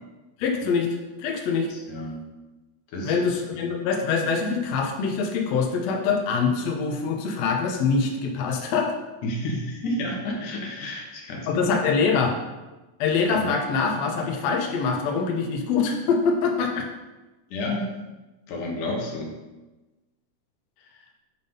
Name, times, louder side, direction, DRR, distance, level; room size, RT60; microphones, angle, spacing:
voice 1, 0.4-0.9 1.2-1.7 3.0-8.9 11.5-12.4 13.0-16.9, left 5 dB, 70° left, 1 dB, 2.0 m, -24 dB
voice 2, 1.7-2.2 2.9-3.2 3.5-3.7 9.2-11.5 13.3-13.5 17.5-17.9 18.5-19.3, left 1 dB, 85° left, -1 dB, 2.8 m, -30 dB
9.3 x 3.6 x 5.4 m, 1.1 s
omnidirectional pair, 3.5 m